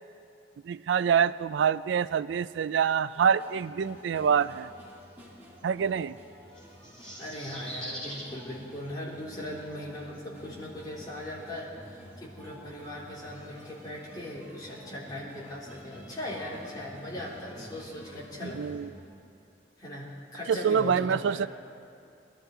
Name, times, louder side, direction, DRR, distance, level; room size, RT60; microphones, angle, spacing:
voice 1, 0.7-4.7 5.6-6.1 18.5-18.9 20.5-21.5, right 7 dB, 85° right, 16 dB, 0.3 m, -26 dB
sound 1, 3.1-19.0, equal, 10° right, 2.9 m, -50 dB
sound 2, 6.5-8.3, equal, 5° left, 2.9 m, -41 dB
voice 2, 7.2-18.6 19.8-21.4, left 1 dB, 20° left, -7 dB, 3.5 m, -39 dB
21.0 x 12.5 x 4.5 m, 2.6 s
head